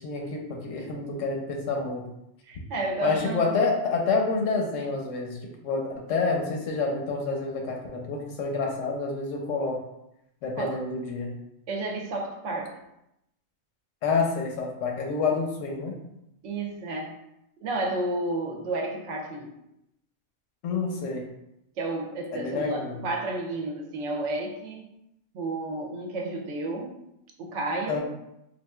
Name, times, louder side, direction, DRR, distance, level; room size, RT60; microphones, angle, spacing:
voice 1, 0.0-2.1 3.0-9.8 10.4-11.4 14.0-16.0 20.6-21.2 22.3-23.0 27.9-28.0, left 4 dB, 85° left, 1 dB, 1.0 m, -28 dB
voice 2, 2.5-3.6 10.6-10.8 11.7-12.8 16.4-17.2 17.6-19.6 21.8-24.9 25.3-27.0 27.4-28.0, right 2 dB, 75° right, 1 dB, 0.9 m, -31 dB
3.6 x 2.5 x 2.3 m, 0.84 s
omnidirectional pair, 1.3 m